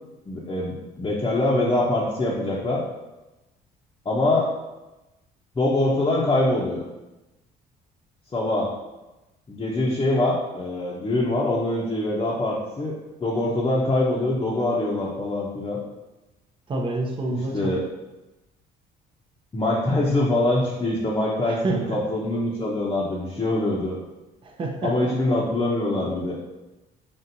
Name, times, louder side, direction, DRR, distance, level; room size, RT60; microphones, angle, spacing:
voice 1, 0.3-2.8 4.0-4.5 5.6-6.8 8.3-8.7 9.5-15.8 17.5-17.8 19.5-24.0 24.8-26.4, left 2 dB, 25° left, -5 dB, 0.7 m, -24 dB
voice 2, 16.7-17.7 21.4-22.0 24.4-25.1, right 2 dB, 30° right, 1 dB, 0.6 m, -28 dB
4.2 x 3.5 x 2.7 m, 1.0 s
cardioid pair, 90°, 18 cm